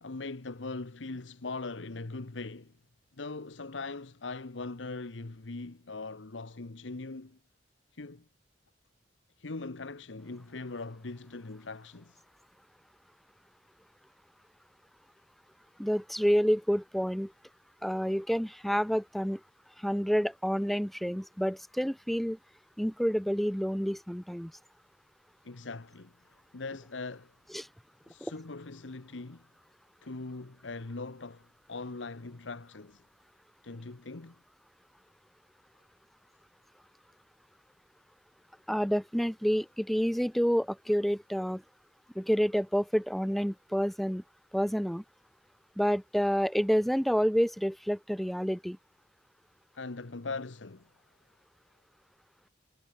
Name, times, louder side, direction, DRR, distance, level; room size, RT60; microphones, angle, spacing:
voice 1, 0.0-2.7 3.2-7.4 7.9-8.2 9.4-12.2 25.4-27.3 28.1-29.5 30.0-33.0 33.6-34.4 49.7-50.9, left 3 dB, 85° left, 1.1 m, -41 dB
voice 2, 15.8-17.3 17.8-19.4 19.8-22.4 22.8-24.5 27.5-27.7 38.7-41.6 42.1-44.2 44.5-45.0 45.8-48.8, equal, ahead, 1.1 m, -28 dB
head